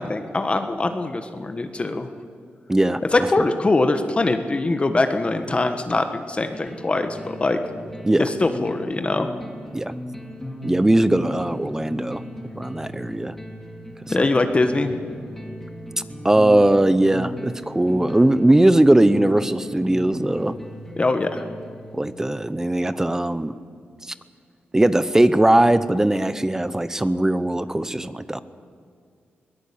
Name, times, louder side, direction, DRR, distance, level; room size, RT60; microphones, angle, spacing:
voice 1, 0.0-2.1 3.1-7.6 8.2-9.3 14.1-15.0 21.0-21.4, left 2 dB, 30° left, 7 dB, 1.4 m, -22 dB
voice 2, 2.7-3.3 8.0-8.2 9.7-9.9 10.6-12.2 12.6-13.3 14.1-14.3 16.2-20.6 21.9-23.5 24.1-24.2 24.7-28.4, right 1 dB, 15° right, 14 dB, 0.8 m, -19 dB
sound 1, 6.5-22.5, equal, 5° left, 2.9 m, -37 dB
22.0 x 18.0 x 8.7 m, 2.2 s
cardioid pair, 85°, 4 cm